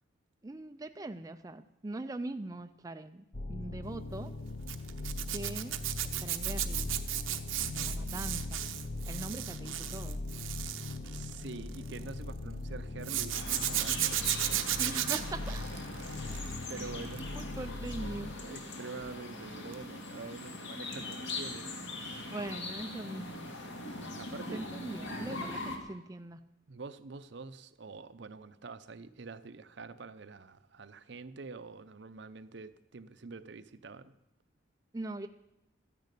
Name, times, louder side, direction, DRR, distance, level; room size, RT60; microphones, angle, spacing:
voice 1, 0.4-4.3 5.3-5.8 6.2-6.9 7.7-8.6 9.1-10.2 14.1-14.2 14.8-15.8 17.3-18.3 22.3-23.5 24.5-25.6 25.9-26.4 34.9-35.3, right 2 dB, 15° right, 7 dB, 0.4 m, -41 dB
sound 1, 3.3-18.3, left 2 dB, 45° left, 0.8 m, -40 dB
Zipper (clothing), 4.7-12.1 13.0-16.7 17.0-17.4 19.7-19.9 20.1-20.2, right 13 dB, 85° right, 0.9 m, -35 dB
voice 2, 11.1-14.2 16.7-17.5 18.4-22.4 24.2-24.7 25.2-25.5 26.7-34.1, right 4 dB, 60° right, 13 dB, 0.6 m, -46 dB
sound 2, 13.3-25.8, left 2 dB, 65° left, 2.2 m, -41 dB
13.0 x 10.5 x 8.3 m, 0.90 s
head